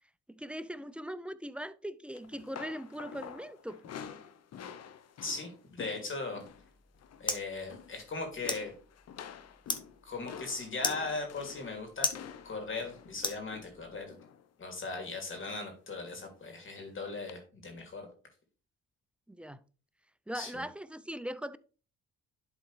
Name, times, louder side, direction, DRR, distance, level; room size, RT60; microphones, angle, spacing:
voice 1, 0.3-3.8 19.3-19.6 20.3-21.6, equal, 5° right, 0.3 m, -40 dB
sound 1, 2.1-6.7 6.9-7.3 7.6-8.1 8.4-14.5 15.3-15.7 16.0-16.2 17.3-17.4, left 8 dB, 55° left, 0.8 m, -48 dB
voice 2, 5.2-6.4 7.2-8.7 10.0-12.1 12.4-14.1 14.6-18.1 20.3-20.6, left 3 dB, 40° left, 2.7 m, -38 dB
sound 2, 6.5-14.0, left 2 dB, 15° left, 1.2 m, -40 dB
11.5 x 4.0 x 3.2 m
cardioid pair, 90°, 30 cm